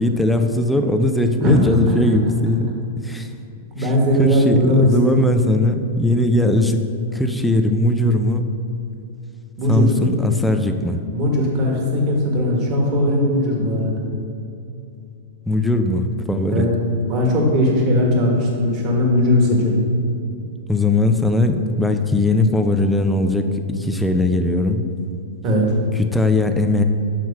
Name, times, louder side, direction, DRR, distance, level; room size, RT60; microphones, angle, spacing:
voice 1, 0.0-2.7 3.0-3.3 3.8-6.8 7.1-8.4 9.7-11.0 15.5-16.7 20.7-24.8 26.0-26.8, left 1 dB, 5° left, 5 dB, 0.4 m, -19 dB
voice 2, 1.4-2.0 2.5-2.6 3.7-5.1 9.6-9.9 11.1-14.0 16.5-16.7 17.1-19.7 25.4-25.8, left 1 dB, 40° right, -1 dB, 1.5 m, -18 dB
7.4 x 3.1 x 5.8 m, 2.6 s
hypercardioid pair, 130°, 0 cm